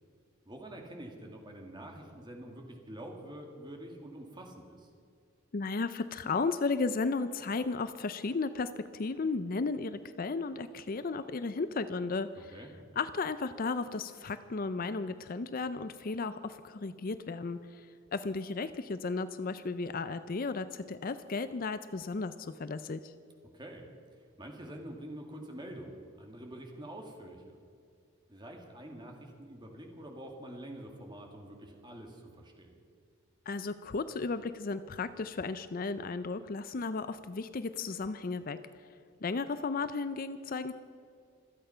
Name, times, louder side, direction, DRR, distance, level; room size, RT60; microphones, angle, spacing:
voice 1, 0.5-4.9 12.3-12.7 23.5-23.9 24.4-27.6 28.3-32.8, right 1 dB, 20° right, 2 dB, 2.1 m, -46 dB
voice 2, 5.5-12.5 13.0-17.9 18.1-23.1 33.5-38.6 39.2-40.7, left 4 dB, 45° left, 12 dB, 0.5 m, -34 dB
25.5 x 8.9 x 5.6 m, 2.3 s
head